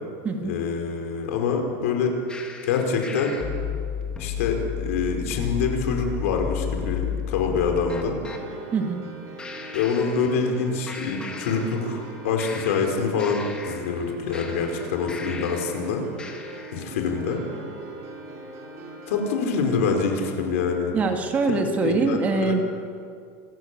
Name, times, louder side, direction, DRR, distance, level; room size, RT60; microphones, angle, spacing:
voice 1, 0.4-2.1 2.6-3.3 4.2-8.2 9.7-16.0 16.7-17.4 19.1-20.9 21.8-22.6, left 5 dB, 85° left, 3 dB, 4.8 m, -25 dB
sound 1, 2.3-8.4 9.4-10.6 10.9-12.1 12.4-15.8 16.2-16.8, left 7 dB, 15° left, 2.1 m, -33 dB
sound 2, 8.3-20.3, right 3 dB, 40° right, 5.6 m, -41 dB
voice 2, 8.7-9.0 20.9-22.6, right 4 dB, 20° right, 4 dB, 2.0 m, -24 dB
28.0 x 14.5 x 8.6 m, 2.3 s
supercardioid pair, 170°, 7 cm